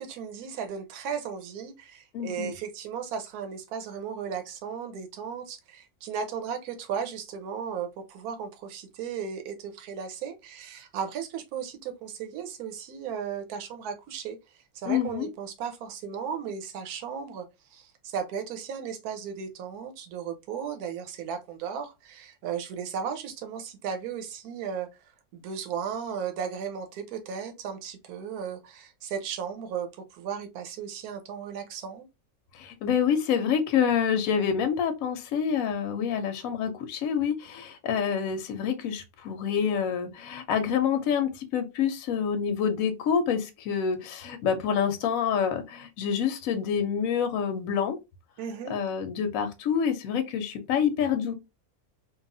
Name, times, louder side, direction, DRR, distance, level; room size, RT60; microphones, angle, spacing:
voice 1, 0.0-14.4 14.7-17.4 17.7-24.9 25.3-32.0 48.4-48.8, right 7 dB, 85° right, 1.1 m, -35 dB
voice 2, 2.1-2.5 14.9-15.3 32.5-48.0 48.7-51.3, left 7 dB, 75° left, 0.9 m, -27 dB
2.9 x 2.3 x 2.5 m
omnidirectional pair, 1.6 m